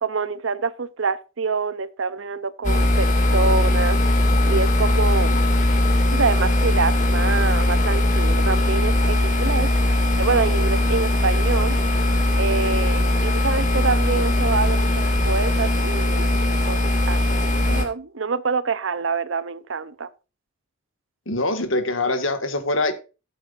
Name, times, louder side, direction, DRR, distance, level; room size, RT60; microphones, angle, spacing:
voice 1, 0.0-4.0 4.4-5.4 6.1-9.7 10.2-11.8 12.4-16.3 16.7-16.8 17.1-20.1, right 4 dB, 80° right, 0.7 m, -26 dB
sound 1, 2.6-17.8, left 1 dB, 35° left, 2.3 m, -20 dB
voice 2, 21.3-22.9, left 2 dB, 85° left, 1.9 m, -23 dB
14.5 x 8.3 x 2.6 m
head